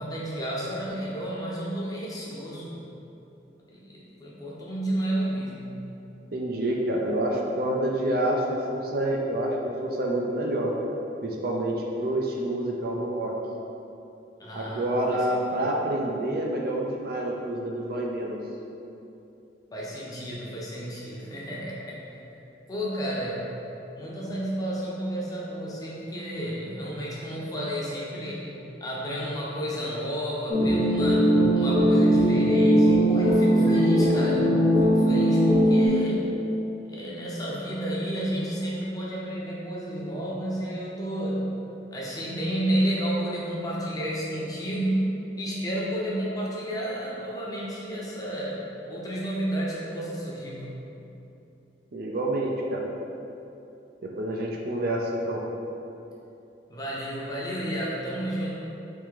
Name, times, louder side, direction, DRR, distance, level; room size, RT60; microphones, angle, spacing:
voice 1, 0.0-2.8 3.7-5.8 14.4-15.2 15.5-15.6 19.7-22.0 22.7-23.4 23.9-28.5 28.8-36.3 36.8-41.5 41.9-45.1 45.4-48.6 48.9-50.7 56.7-58.5, right 1 dB, 20° left, -6 dB, 0.7 m, -31 dB
voice 2, 6.3-9.6 9.8-10.7 11.2-13.3 14.5-18.4 51.9-52.8 54.0-55.4, right 1 dB, 55° right, -1 dB, 0.4 m, -28 dB
sound 1, 30.5-35.9, equal, 60° left, 1.1 m, -20 dB
3.6 x 2.9 x 4.7 m, 2.8 s
head